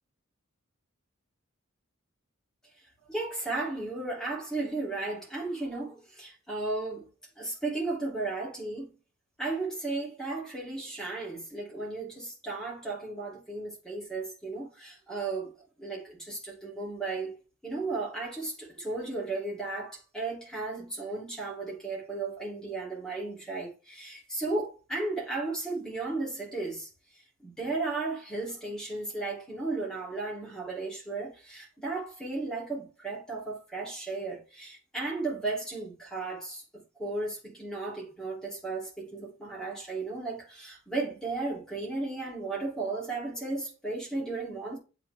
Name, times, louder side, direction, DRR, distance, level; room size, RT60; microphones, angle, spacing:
voice 1, 3.1-7.1 7.4-8.9 9.4-15.5 15.8-26.9 27.4-44.8, right 3 dB, 5° left, 2.4 m, -35 dB
8.8 x 3.8 x 3.2 m
head